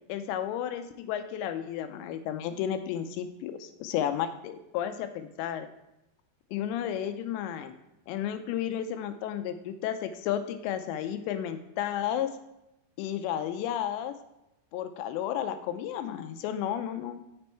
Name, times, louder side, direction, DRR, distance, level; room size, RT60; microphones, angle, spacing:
voice 1, 0.1-5.7 6.5-7.7 8.1-12.3 13.0-14.1 14.7-17.2, left 10 dB, 80° left, 9 dB, 2.7 m, -32 dB
7.8 x 6.1 x 4.4 m, 0.88 s
omnidirectional pair, 5.3 m